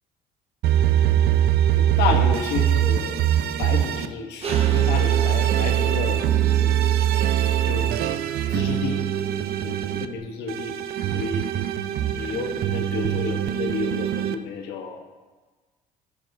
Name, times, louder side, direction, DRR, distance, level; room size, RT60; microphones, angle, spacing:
sound 1, 0.6-4.1 4.5-10.0 10.5-14.3, right 11 dB, 65° right, 0.5 m, -22 dB
voice 1, 1.7-3.2 3.6-6.2 6.6-6.7 7.6-7.9 8.5-9.0 9.6-10.7 11.1-11.5 12.1-15.0, left 6 dB, 85° left, 4 dB, 1.0 m, -30 dB
sound 2, 4.4-10.2, right 7 dB, 35° right, 0.8 m, -35 dB
13.5 x 4.8 x 2.7 m, 1.3 s
cardioid pair, 110°, 17 cm